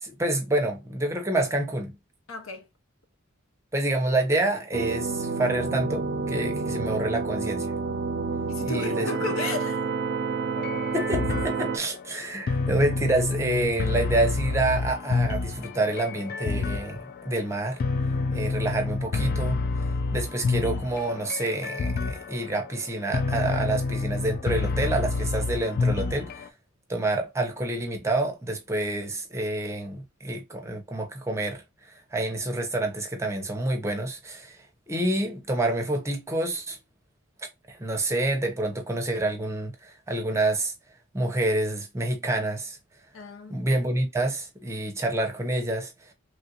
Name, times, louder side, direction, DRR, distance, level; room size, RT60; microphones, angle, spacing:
voice 1, 0.0-1.9 3.7-7.7 8.6-9.1 10.9-17.8 18.3-19.6 20.1-26.5 26.9-36.8 37.7-40.7 41.1-42.8 43.5-45.9, right 2 dB, 15° right, 0.7 m, -28 dB
voice 2, 2.3-2.7 8.5-9.8 43.1-43.7, left 3 dB, 75° left, 0.7 m, -34 dB
sound 1, 4.7-11.8, right 4 dB, 60° right, 0.4 m, -29 dB
sound 2, 10.6-26.5, left 3 dB, 45° left, 0.3 m, -28 dB
3.2 x 2.5 x 2.7 m
head